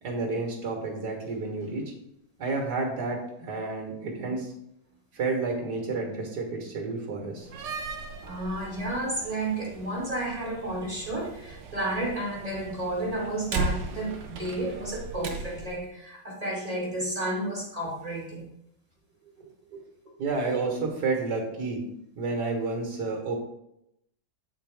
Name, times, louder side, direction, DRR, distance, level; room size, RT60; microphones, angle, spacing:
voice 1, 0.0-1.9 2.4-4.5 5.1-7.5 8.2-8.3 19.4-19.8 20.2-21.8 22.2-23.4, right 3 dB, 70° right, 1 dB, 2.0 m, -30 dB
Slam, 7.4-15.8, right 3 dB, 55° right, 0.9 m, -37 dB
voice 2, 8.3-18.5, right 1 dB, 25° right, -4 dB, 1.6 m, -32 dB
8.5 x 4.7 x 3.4 m, 0.79 s
omnidirectional pair, 1.8 m